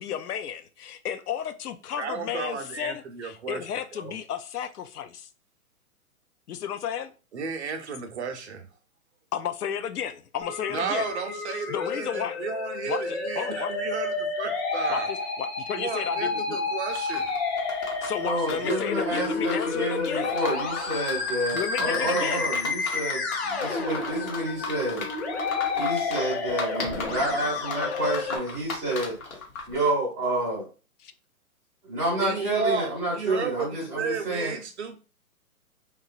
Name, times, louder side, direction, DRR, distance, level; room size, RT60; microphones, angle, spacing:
voice 1, 0.0-5.2 6.5-7.1 9.3-11.1 11.5-12.4 12.9-13.7 14.9-16.6 18.0-20.3 21.5-22.5 31.0-31.1, left 9 dB, 90° left, 0.6 m, -33 dB
voice 2, 2.0-3.6 3.9-4.1 7.3-8.7 10.7-15.1 15.8-17.3 32.2-35.0, right 5 dB, 50° right, 0.5 m, -33 dB
Musical instrument, 10.4-28.4, left 4 dB, 45° left, 0.8 m, -30 dB
sound 1, 16.9-29.8, left 3 dB, 65° left, 1.0 m, -37 dB
voice 3, 18.2-25.1 25.8-29.2 29.7-30.6 31.9-34.6, right 1 dB, 5° right, 0.6 m, -29 dB
2.9 x 2.2 x 2.4 m
hypercardioid pair, 150°, 45 cm